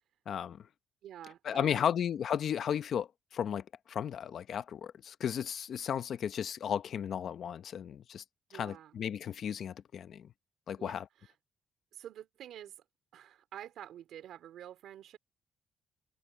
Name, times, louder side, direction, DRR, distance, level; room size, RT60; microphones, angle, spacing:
voice 1, 0.3-0.7 1.4-8.2 8.5-10.3 10.7-11.1, left 8 dB, 60° left, 0.9 m, -34 dB
voice 2, 1.0-1.9 8.5-9.0 10.8-11.3 11.9-12.8 13.1-15.2, right 11 dB, 80° right, 3.4 m, -48 dB
cardioid pair, 110°, 0 cm